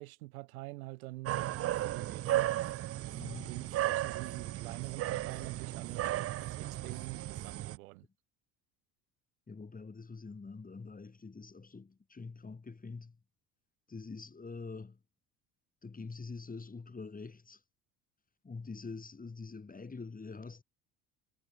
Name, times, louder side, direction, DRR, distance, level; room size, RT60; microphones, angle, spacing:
voice 1, 0.0-2.5 3.4-6.0 6.4-8.1, right 22 dB, 65° right, 1.7 m, -46 dB
sound 1, 1.3-7.8, right 14 dB, 30° right, 0.6 m, -35 dB
voice 2, 3.1-3.5 9.5-13.2 13.9-15.0 15.8-17.6 18.4-20.6, left 4 dB, 20° left, 4.3 m, -45 dB
figure-of-eight pair, 65°, 45 cm